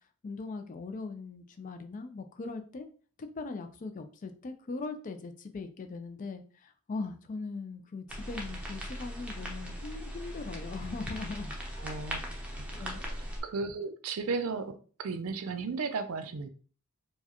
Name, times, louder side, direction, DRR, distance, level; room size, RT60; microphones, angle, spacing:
voice 1, 0.2-2.9 3.2-11.5 12.7-13.0, left 3 dB, 35° left, 8 dB, 0.4 m, -40 dB
sound 1, 8.1-13.4, equal, 5° right, 0.6 m, -39 dB
voice 2, 11.8-12.2 12.6-13.1 13.4-16.5, right 4 dB, 70° right, 9 dB, 0.4 m, -35 dB
4.6 x 2.2 x 2.9 m, 0.41 s
head